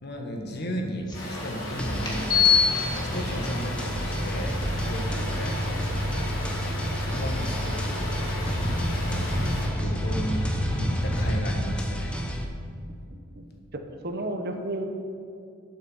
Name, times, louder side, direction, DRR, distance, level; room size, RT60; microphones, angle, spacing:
voice 1, 0.0-5.6 6.7-8.2 9.0-9.3 9.8-10.4 10.8-12.2, equal, 55° left, 2 dB, 1.5 m, -34 dB
sound 1, 1.1-9.7, left 1 dB, 90° left, 3.1 m, -36 dB
sound 2, 1.1-1.2 2.0-11.4, left 3 dB, 20° left, 1.9 m, -28 dB
sound 3, 1.8-12.4, equal, 5° left, 0.9 m, -32 dB
voice 2, 5.2-5.8 13.1-13.4 13.7-14.9, right 1 dB, 50° right, 5 dB, 1.1 m, -34 dB
9.1 x 7.6 x 7.2 m, 2.4 s
head